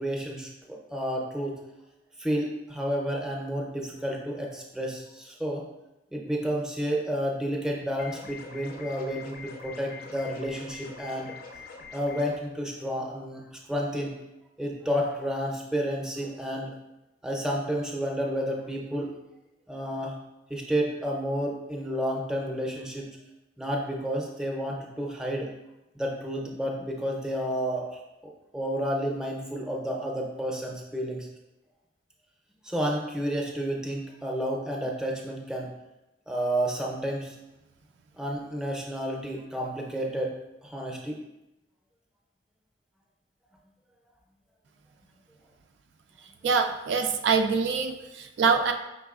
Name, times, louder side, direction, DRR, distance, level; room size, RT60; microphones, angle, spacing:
voice 1, 0.0-1.6 2.2-5.6 6.1-11.3 11.9-13.4 13.7-14.2 14.6-16.7 17.2-19.1 19.7-20.2 20.5-23.1 23.6-25.5 25.9-27.9 28.5-31.3 32.6-35.7 36.3-37.3 38.2-40.3 40.6-41.2, equal, 5° right, -1 dB, 0.6 m, -31 dB
sound 1, 8.0-12.4, left 4 dB, 55° left, 0.5 m, -44 dB
voice 2, 46.4-48.7, right 5 dB, 70° right, 5 dB, 0.3 m, -24 dB
4.8 x 3.8 x 2.4 m, 0.95 s
head